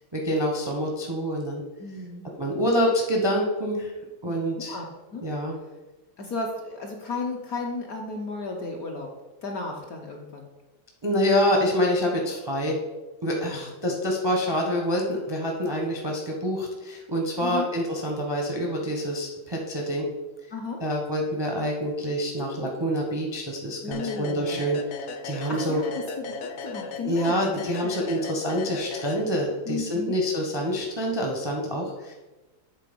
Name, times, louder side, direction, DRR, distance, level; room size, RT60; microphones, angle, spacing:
voice 1, 0.1-1.6 2.4-3.9 4.2-4.8 5.2-5.5 11.0-12.8 13.2-20.1 20.8-24.8 25.2-25.8 27.0-32.1, equal, 30° right, 0 dB, 0.4 m, -26 dB
voice 2, 1.8-2.3 4.3-4.8 5.1-5.3 6.2-9.1 9.4-10.5 13.4-13.6 17.4-17.7 20.5-20.8 23.8-24.7 25.5-27.9 29.7-30.2, left 3 dB, 60° left, 1 dB, 1.0 m, -34 dB
sound 1, 23.9-29.7, left 4 dB, 85° left, 0.7 m, -37 dB
7.6 x 3.9 x 5.2 m, 1.1 s
omnidirectional pair, 2.3 m